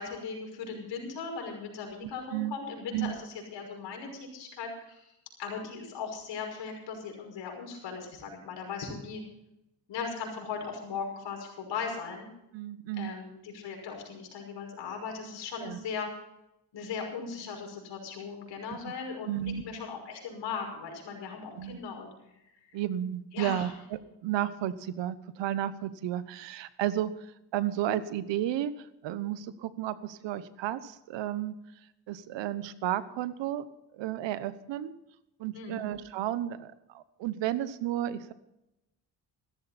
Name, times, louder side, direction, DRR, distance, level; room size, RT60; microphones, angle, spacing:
voice 1, 0.0-9.2 9.9-12.3 13.0-16.1 16.7-22.1 22.6-22.8 23.3-23.7 35.5-35.9, left 5 dB, 80° left, 1 dB, 5.9 m, -38 dB
voice 2, 2.0-2.6 2.9-3.2 12.5-13.1 15.6-15.8 18.7-18.8 19.3-19.6 21.6-21.8 22.7-27.3 27.5-31.6 32.1-33.7 33.9-34.9 35.4-38.3, right 12 dB, 85° right, 15 dB, 1.1 m, -33 dB
16.0 x 14.0 x 4.3 m, 0.88 s
cardioid pair, 75°, 43 cm